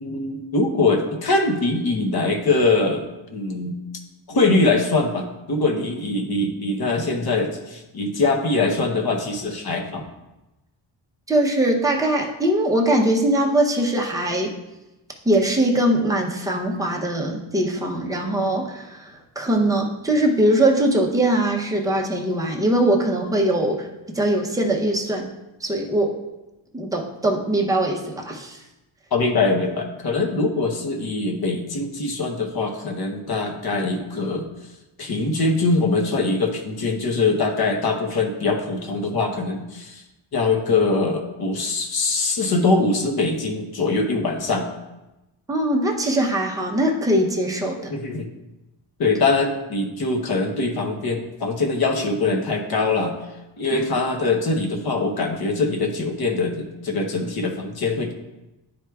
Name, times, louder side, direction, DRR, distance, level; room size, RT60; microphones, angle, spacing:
voice 1, 0.0-3.0 3.3-3.8 4.3-10.0 29.1-34.5 35.0-40.0 40.3-44.7 47.9-48.3 49.0-53.1 53.6-58.1, left 3 dB, 50° left, 4 dB, 0.9 m, -22 dB
voice 2, 11.3-14.5 15.2-25.3 25.6-26.2 26.7-28.6 45.5-47.9, right 1 dB, 5° right, -1 dB, 0.6 m, -21 dB
10.5 x 4.6 x 2.3 m, 1.0 s
wide cardioid pair, 175°, 48 cm